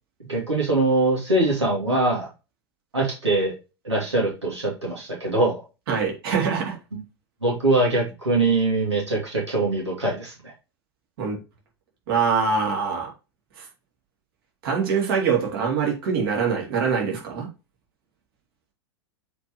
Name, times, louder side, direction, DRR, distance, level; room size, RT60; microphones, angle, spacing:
voice 1, 0.3-2.3 2.9-3.5 3.8-5.6 7.4-10.5, right 2 dB, 85° right, 2.7 m, -22 dB
voice 2, 5.9-6.8 11.2-11.4 12.1-13.1 13.6-13.7 14.6-17.5, right 6 dB, 55° right, 3.1 m, -24 dB
7.7 x 4.7 x 3.1 m
figure-of-eight pair, 95°, 14 cm